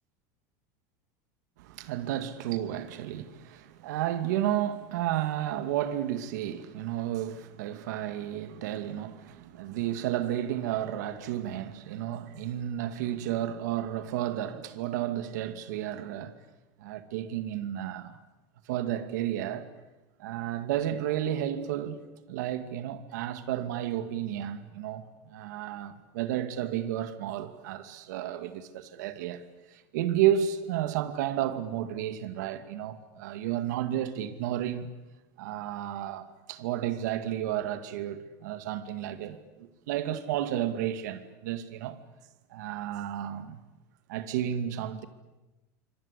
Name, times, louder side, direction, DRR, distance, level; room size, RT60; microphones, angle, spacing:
voice 1, 1.6-16.3 16.8-18.2 18.7-19.7 20.2-29.4 29.7-34.9 35.4-42.0 42.5-43.6 44.1-45.1, right 11 dB, 80° right, 2.3 m, -32 dB
28.0 x 25.0 x 8.4 m
supercardioid pair, 165°, 9 cm